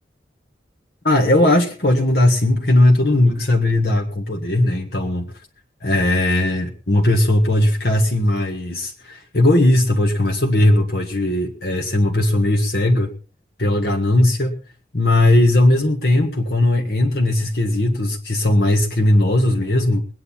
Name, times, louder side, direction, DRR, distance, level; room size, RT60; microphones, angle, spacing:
voice 1, 1.0-5.3 5.8-13.1 13.6-14.5 14.9-20.1, left 1 dB, 65° left, 2 dB, 1.7 m, -18 dB
21.5 x 9.5 x 4.4 m, 0.37 s
head